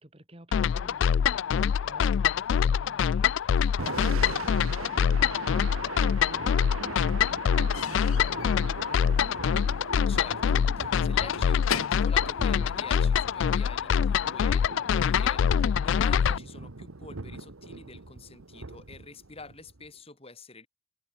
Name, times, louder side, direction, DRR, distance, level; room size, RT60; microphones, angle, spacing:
voice 1, 0.0-9.4, right 1 dB, 25° right, 2.1 m, -50 dB
sound 1, 0.5-16.4, left 7 dB, 65° left, 0.3 m, -25 dB
Thunder / Rain, 3.6-19.9, right 3 dB, 85° right, 1.3 m, -41 dB
Slam / Squeak / Wood, 5.5-6.3 6.6-13.3, left 7 dB, 85° left, 0.9 m, -39 dB
voice 2, 10.1-20.7, left 3 dB, 30° left, 3.0 m, -46 dB
head